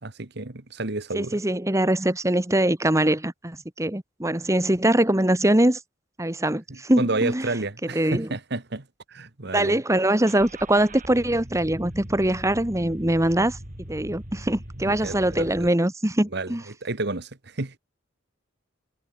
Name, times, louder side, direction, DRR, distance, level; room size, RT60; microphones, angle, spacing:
voice 1, 0.0-1.4 6.7-9.8 14.9-15.7 16.3-17.8, right 2 dB, 55° right, 1.6 m, -31 dB
voice 2, 1.1-5.8 6.2-7.5 7.9-8.3 9.5-13.6 13.9-16.6, right 1 dB, 15° right, 1.4 m, -22 dB
Car / Engine starting, 10.3-15.7, right 1 dB, 40° right, 3.6 m, -40 dB
head